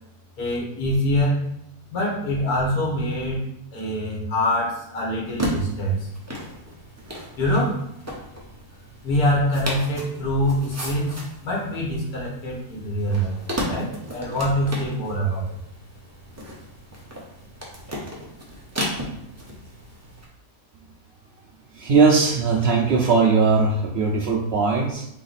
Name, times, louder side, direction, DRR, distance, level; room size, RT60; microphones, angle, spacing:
voice 1, 0.4-1.4 1.9-3.4 3.7-6.1 7.4-7.8 9.0-15.4, equal, 65° left, -4 dB, 1.8 m, -24 dB
sound 1, 5.2-20.2, equal, 15° right, 0.6 m, -35 dB
voice 2, 21.7-25.1, right 4 dB, 90° right, 0 dB, 0.5 m, -19 dB
3.8 x 3.4 x 4.0 m, 0.79 s
omnidirectional pair, 1.7 m